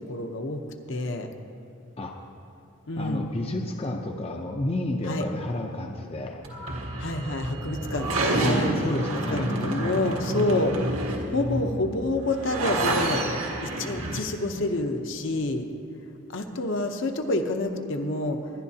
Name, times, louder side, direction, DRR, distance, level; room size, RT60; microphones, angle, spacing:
voice 1, 0.1-0.6 0.9-1.3 2.9-3.3 5.1-5.3 7.0-10.8 11.3-13.2 13.6-15.7 16.3-18.5, left 2 dB, 55° left, 5 dB, 0.8 m, -28 dB
voice 2, 3.0-6.5 8.4-10.2 11.3-12.0, left 1 dB, 25° left, 2 dB, 0.6 m, -31 dB
sound 1, 6.4-14.2, right 2 dB, 70° right, 1.6 m, -29 dB
21.5 x 11.0 x 2.8 m, 2.7 s
head